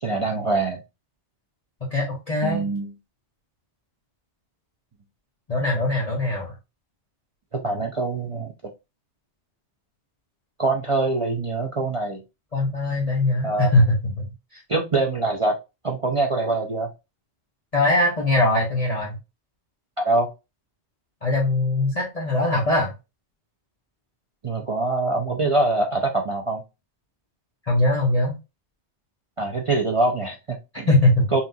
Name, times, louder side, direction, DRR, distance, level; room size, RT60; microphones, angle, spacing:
voice 1, 0.0-0.8 2.4-2.9 7.5-8.5 10.6-12.2 13.4-13.7 14.7-15.6 15.8-16.9 20.0-20.3 24.4-26.6 29.4-30.9 31.3-31.4, right 2 dB, 35° right, 2 dB, 0.6 m, -24 dB
voice 2, 1.9-2.7 5.5-6.5 12.5-14.6 17.7-19.2 21.2-22.9 27.7-28.3 30.9-31.2, left 2 dB, 35° left, -4 dB, 1.1 m, -21 dB
5.7 x 2.5 x 2.7 m, 0.25 s
omnidirectional pair, 1.1 m